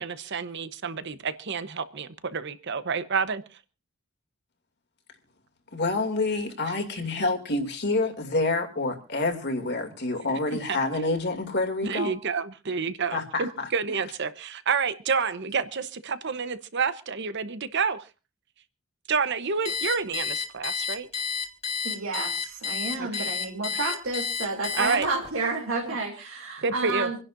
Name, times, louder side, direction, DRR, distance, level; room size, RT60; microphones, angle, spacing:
voice 1, 0.0-3.4 10.3-10.4 10.7-10.8 11.8-18.0 19.1-21.1 23.0-23.3 24.7-25.1 26.6-27.1, right 5 dB, 55° right, 0.9 m, -29 dB
voice 2, 5.7-12.1 13.1-13.7, left 2 dB, 55° left, 2.5 m, -27 dB
Alarm, 19.6-25.3, left 6 dB, 30° left, 2.2 m, -30 dB
voice 3, 21.8-27.2, right 3 dB, 75° right, 3.0 m, -31 dB
27.5 x 11.0 x 2.6 m
head